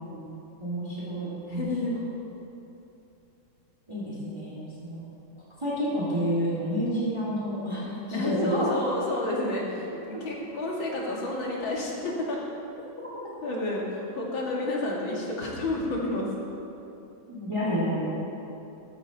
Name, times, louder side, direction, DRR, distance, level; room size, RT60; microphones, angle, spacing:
voice 1, 0.6-1.9 3.9-5.0 5.6-8.7 13.0-13.1 17.3-18.2, equal, 15° right, -7 dB, 2.4 m, -29 dB
voice 2, 1.5-2.0 8.1-12.4 13.4-16.3, left 2 dB, 85° left, -3 dB, 3.0 m, -30 dB
14.0 x 13.0 x 4.1 m, 2.9 s
omnidirectional pair, 2.1 m